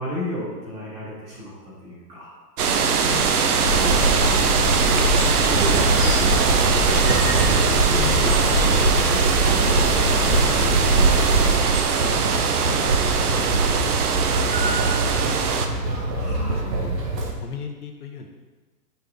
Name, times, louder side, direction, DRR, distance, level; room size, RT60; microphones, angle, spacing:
voice 1, 0.0-2.3 2.8-4.1 4.9-10.1 10.4-12.5 12.8-14.5 15.2-15.4 16.1-16.6, equal, 15° right, -7 dB, 1.4 m, -35 dB
sound 1, 2.6-15.7, right 5 dB, 65° right, 0.8 m, -21 dB
voice 2, 3.0-3.5 8.0-8.4 15.4-15.5 16.2-16.9 17.4-18.3, left 7 dB, 65° left, 3 dB, 1.0 m, -35 dB
sound 2, 3.6-11.6, equal, ahead, 0.5 m, -24 dB
sound 3, 5.5-17.3, right 2 dB, 90° right, 1.5 m, -26 dB
5.8 x 5.3 x 3.5 m, 1.2 s
hypercardioid pair, 160°, 48 cm